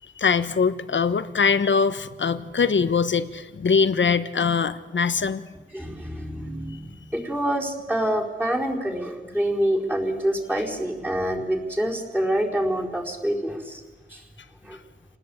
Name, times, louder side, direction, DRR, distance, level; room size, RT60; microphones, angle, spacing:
voice 1, 0.2-5.4, left 5 dB, 65° left, 12 dB, 1.2 m, -22 dB
voice 2, 5.7-13.8 14.1-14.3 14.6-14.8, right 1 dB, 10° right, -1 dB, 4.6 m, -26 dB
28.0 x 19.5 x 8.7 m, 1.3 s
wide cardioid pair, 105°, 20 cm